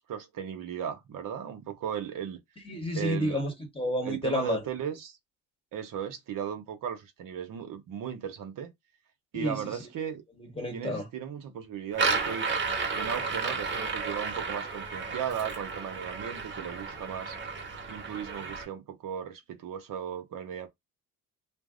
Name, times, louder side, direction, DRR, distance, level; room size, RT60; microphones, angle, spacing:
voice 1, 0.0-2.4 2.9-3.4 4.0-5.2 5.7-8.7 9.3-10.2 10.7-12.5 12.9-17.4 17.9-20.7, right 8 dB, 60° right, 0.8 m, -36 dB
voice 2, 2.6-4.6 9.3-9.6 10.4-11.0, left 1 dB, 15° left, 1.0 m, -30 dB
sound 1, 11.9-18.6, right 4 dB, 30° right, 0.9 m, -32 dB
2.6 x 2.0 x 3.6 m
cardioid pair, 120°, 37 cm